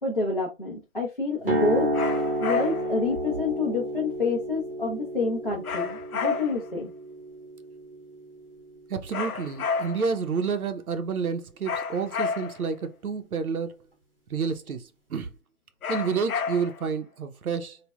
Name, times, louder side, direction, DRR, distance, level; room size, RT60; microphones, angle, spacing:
voice 1, 0.0-1.9 2.4-6.9, left 3 dB, 40° left, 0.5 m, -28 dB
sound 1, 1.4-9.4, equal, 40° right, 0.7 m, -31 dB
sound 2, 1.9-3.0 5.6-6.7 9.1-10.2 11.6-12.7 15.8-16.9, left 5 dB, 90° left, 0.7 m, -31 dB
voice 2, 8.9-13.7 14.3-15.3 15.9-17.8, right 5 dB, 85° right, 0.7 m, -29 dB
3.3 x 2.1 x 2.2 m
figure-of-eight pair, 175°, 42 cm